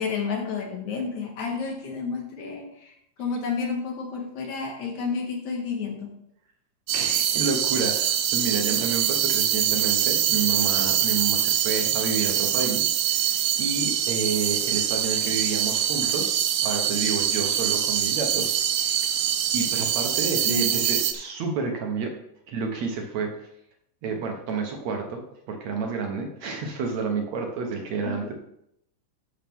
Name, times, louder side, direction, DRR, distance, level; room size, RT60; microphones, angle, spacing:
voice 1, 0.0-6.1 20.4-20.8 28.0-28.3, left 5 dB, 65° left, 1 dB, 2.8 m, -31 dB
voice 2, 6.9-16.4 16.6-19.1 19.5-22.1 22.5-23.5 24.0-28.3, right 4 dB, 65° right, 3 dB, 2.2 m, -30 dB
sound 1, 6.9-21.1, right 10 dB, 85° right, 1.3 m, -24 dB
12.0 x 6.5 x 3.6 m, 0.77 s
omnidirectional pair, 3.6 m